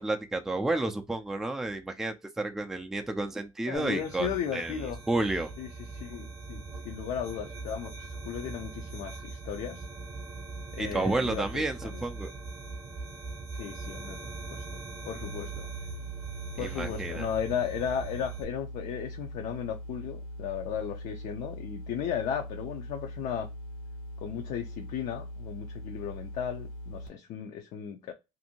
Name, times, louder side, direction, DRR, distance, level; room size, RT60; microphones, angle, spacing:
voice 1, 0.0-4.7 5.1-5.5 10.8-12.3 16.6-17.3, right 2 dB, 5° right, 0.3 m, -31 dB
voice 2, 3.7-5.0 5.6-9.9 10.7-11.6 11.9-12.0 13.6-15.7 16.6-23.5 24.2-28.1, left 8 dB, 60° left, 0.5 m, -35 dB
sound 1, 3.7-18.4, right 3 dB, 20° right, 0.7 m, -41 dB
sound 2, 15.2-27.1, equal, 80° left, 1.0 m, -41 dB
2.6 x 2.6 x 2.8 m
cardioid pair, 160°, 13 cm